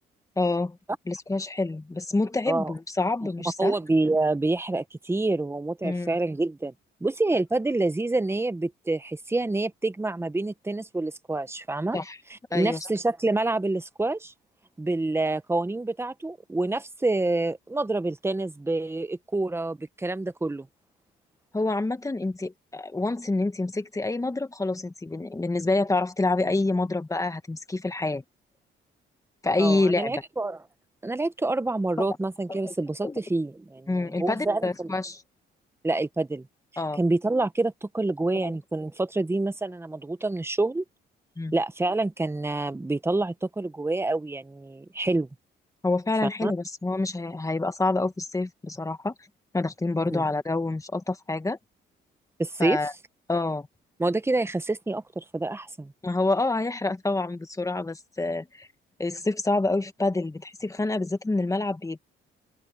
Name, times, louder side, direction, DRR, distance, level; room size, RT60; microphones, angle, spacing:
voice 1, 0.4-0.8 1.1-3.7 5.8-6.1 11.9-12.2 12.5-12.8 21.5-28.2 29.4-30.1 32.0-32.1 32.6-32.7 33.0-33.2 33.9-35.2 36.8-37.0 38.4-38.5 41.4-41.5 45.8-49.1 49.5-51.6 52.6-52.9 53.3-53.7 56.0-58.7 59.0-62.0, left 2 dB, 15° left, 1.8 m, -27 dB
voice 2, 3.6-6.7 7.0-12.0 12.3-14.3 14.8-20.7 29.6-30.6 31.0-33.9 34.2-34.9 35.8-36.5 37.0-40.8 41.5-45.3 46.2-46.5 50.1-50.2 52.4-52.8 54.0-55.9, right 2 dB, 10° right, 1.0 m, -27 dB
open air
cardioid pair, 90°, 20 cm